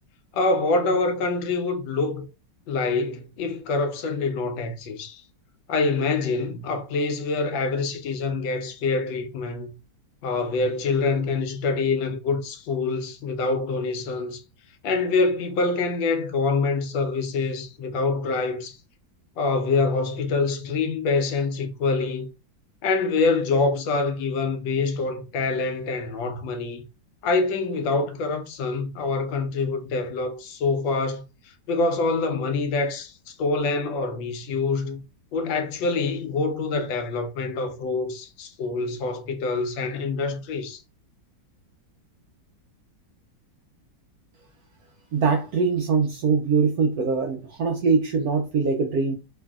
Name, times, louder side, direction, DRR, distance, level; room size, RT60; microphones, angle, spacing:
voice 1, 0.3-2.3 2.7-5.2 5.7-9.7 10.2-14.4 14.8-18.8 19.4-22.3 22.8-26.8 27.2-35.0 35.3-40.8, left 3 dB, 90° left, 1.4 m, -25 dB
voice 2, 45.1-49.1, right 5 dB, 75° right, 0.8 m, -22 dB
3.3 x 2.6 x 2.3 m
omnidirectional pair, 2.1 m